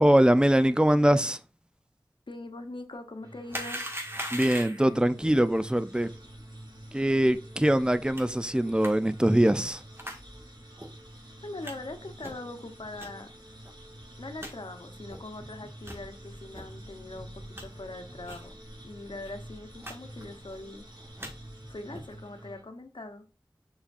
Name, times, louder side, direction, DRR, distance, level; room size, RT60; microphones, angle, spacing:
voice 1, 0.0-1.4 4.3-6.1 6.9-9.8, right 1 dB, 10° right, 0.5 m, -23 dB
voice 2, 2.3-3.8 11.4-13.3 14.2-18.5 18.8-20.8 21.7-23.2, left 2 dB, 90° left, 1.0 m, -42 dB
sound 1, 3.2-22.6, right 1 dB, 70° right, 3.1 m, -49 dB
sound 2, 3.5-4.9 8.2-8.3 8.8-8.9 10.0-10.2 10.8-10.9 11.6-11.7 12.2-12.5 13.0-13.1 13.7-13.8 14.0-14.1 14.4-14.5 15.1-15.2 15.8-16.0 16.5-16.7 17.1-17.6 18.3-18.5 18.7-18.8 19.1-19.3 19.8-19.9 20.2-20.6 21.0-21.3 21.9-22.2, equal, 30° right, 1.9 m, -39 dB
sound 3, 4.8-22.5, equal, 85° right, 3.5 m, -52 dB
7.0 x 5.7 x 2.6 m
wide cardioid pair, 45°, 8 cm